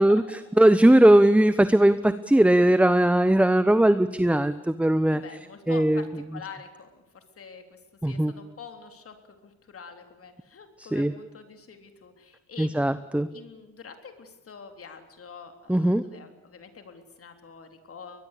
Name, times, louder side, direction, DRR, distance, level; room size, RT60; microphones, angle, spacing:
voice 1, 0.0-0.4 5.1-7.8 8.1-9.2 9.4-13.1 13.3-18.3, left 5 dB, 50° left, 7 dB, 3.6 m, -46 dB
voice 2, 0.6-5.2 5.7-6.0 8.0-8.3 10.8-11.1 12.6-13.3 15.7-16.0, right 1 dB, 5° right, 13 dB, 0.9 m, -19 dB
22.0 x 20.5 x 8.4 m, 1.0 s
cardioid pair, 90°, 30 cm